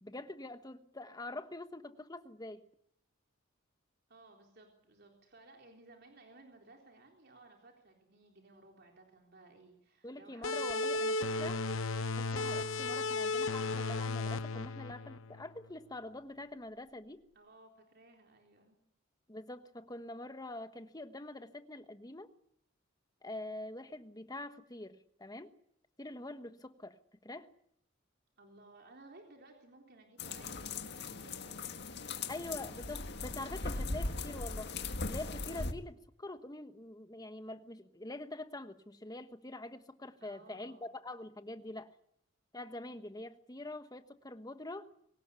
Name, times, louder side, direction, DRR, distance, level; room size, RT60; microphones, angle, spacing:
voice 1, 0.0-2.6 10.0-11.6 12.2-17.2 19.3-22.3 23.2-25.5 26.0-27.0 27.2-27.5 32.3-34.7 35.0-41.9 42.5-44.9, left 2 dB, 20° left, 1.3 m, -45 dB
voice 2, 4.1-10.8 17.3-18.8 28.4-32.5 40.2-40.9, right 2 dB, 55° right, 3.9 m, -59 dB
sound 1, 10.4-15.7, left 3 dB, 85° left, 0.8 m, -35 dB
sound 2, 30.2-35.7, left 3 dB, 55° left, 1.9 m, -39 dB
23.5 x 18.5 x 8.3 m
head